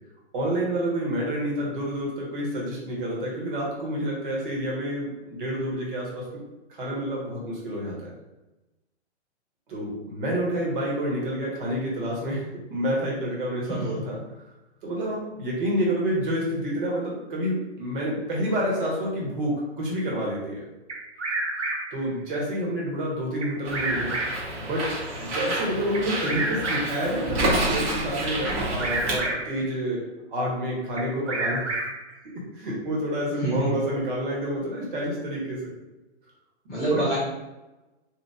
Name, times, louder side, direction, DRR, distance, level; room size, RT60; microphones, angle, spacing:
voice 1, 0.3-6.2 6.7-8.1 9.7-12.4 12.7-14.2 14.8-20.6 21.9-24.1 24.6-30.0 30.3-31.7 32.2-35.6 36.7-37.0, equal, 50° right, -3 dB, 1.4 m, -28 dB
Bird vocalization bird call bird song, 20.9-22.1 23.4-24.5 25.9-27.1 28.5-29.6 31.0-32.1, right 2 dB, 85° right, 0.7 m, -30 dB
Bird, 23.6-29.2, right 1 dB, 30° right, 1.0 m, -29 dB
voice 2, 33.4-33.8 36.7-37.2, right 2 dB, ahead, -15 dB, 0.3 m, -26 dB
2.9 x 2.4 x 3.7 m, 1.0 s
figure-of-eight pair, 120°, 34 cm